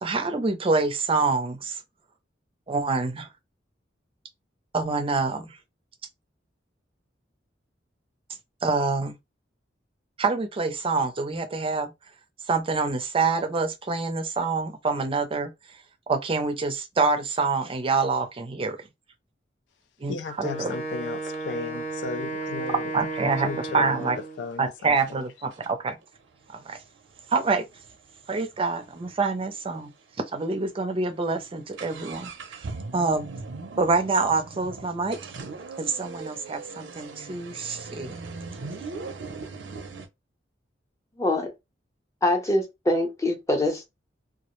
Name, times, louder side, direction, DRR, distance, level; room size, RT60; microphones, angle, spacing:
voice 1, 0.0-1.8 2.7-3.3 4.7-5.6 8.6-9.2 10.2-11.9 12.4-18.9 20.0-20.7 22.9-24.2 24.6-26.0 26.5-26.8 27.3-27.6 28.3-29.9 30.3-32.7 32.9-33.2 33.8-35.2 35.8-38.2, right 4 dB, 30° right, 0.4 m, -26 dB
voice 2, 20.1-22.8 23.2-24.1 24.4-24.9, left 5 dB, 70° left, 0.3 m, -35 dB
Wind instrument woodwind instrument, 20.4-24.4, right 2 dB, 45° left, 0.8 m, -33 dB
sound 1, 20.7-20.8 21.3-23.9 24.5-24.6 25.0-25.1 25.5-29.2 29.5-29.6 29.7-29.9 30.5-30.6 30.9-40.1, right 3 dB, 85° right, 0.5 m, -40 dB
voice 3, 41.2-41.5 42.2-43.9, left 1 dB, 15° left, 0.7 m, -24 dB
2.2 x 2.0 x 3.0 m
head